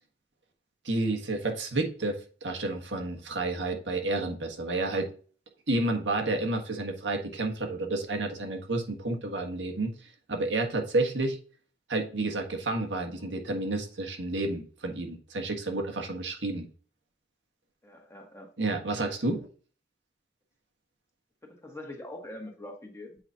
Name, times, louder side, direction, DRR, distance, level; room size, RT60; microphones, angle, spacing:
voice 1, 0.8-5.1 5.7-9.9 10.3-11.4 11.9-16.7 18.6-19.5, right 2 dB, 85° right, 2 dB, 1.5 m, -30 dB
voice 2, 17.8-18.5 21.5-23.2, left 1 dB, 15° left, 2 dB, 1.4 m, -43 dB
8.1 x 4.9 x 2.8 m, 0.40 s
head